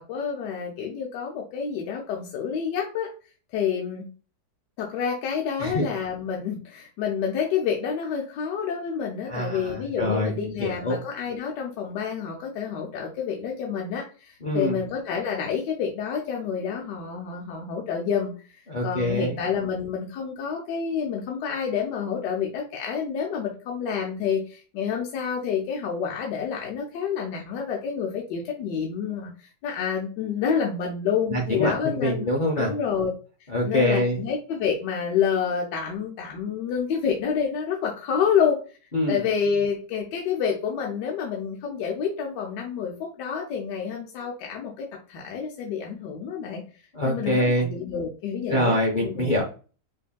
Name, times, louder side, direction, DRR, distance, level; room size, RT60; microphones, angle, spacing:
voice 1, 0.0-3.1 3.5-4.1 4.8-18.3 18.8-32.2 32.6-33.1 33.6-38.6 39.1-46.6 47.0-49.4, left 7 dB, 85° left, 0 dB, 1.3 m, -28 dB
voice 2, 5.6-5.9 9.3-11.0 14.4-14.8 18.7-19.4 31.3-32.7 33.5-34.2 38.9-39.3 46.9-47.7 48.5-49.4, equal, 60° left, 0 dB, 0.5 m, -25 dB
5.2 x 2.7 x 2.2 m, 0.36 s
omnidirectional pair, 1.9 m